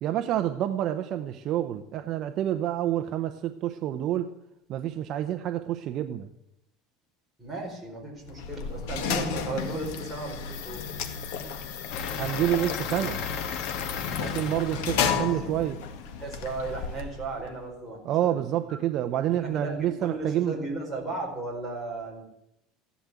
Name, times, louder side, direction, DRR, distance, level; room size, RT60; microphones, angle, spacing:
voice 1, 0.0-4.3 4.7-6.3 12.2-13.2 14.2-15.8 18.0-20.5, right 12 dB, 40° right, 8 dB, 0.7 m, -28 dB
voice 2, 7.4-10.8 15.0-15.4 16.2-18.4 18.7-18.8 19.4-22.2, right 3 dB, ahead, -4 dB, 4.6 m, -35 dB
sound 1, 8.2-17.5, left 6 dB, 75° left, 1.9 m, -33 dB
sound 2, 11.9-16.9, left 6 dB, 45° left, 1.5 m, -36 dB
15.5 x 11.5 x 8.4 m, 0.78 s
cardioid pair, 175°, 0 cm